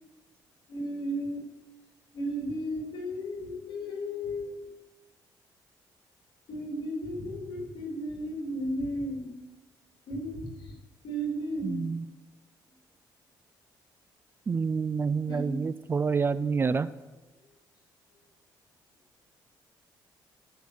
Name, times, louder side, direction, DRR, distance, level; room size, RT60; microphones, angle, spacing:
voice 1, 0.7-1.5 2.1-4.5 6.5-9.3 10.1-10.7 11.0-12.0 15.3-15.5, equal, 80° left, 1 dB, 3.0 m, -34 dB
voice 2, 11.6-12.1 14.5-16.9, right 5 dB, 30° right, 16 dB, 0.4 m, -28 dB
13.0 x 5.9 x 6.4 m, 1.1 s
cardioid pair, 110°, 8 cm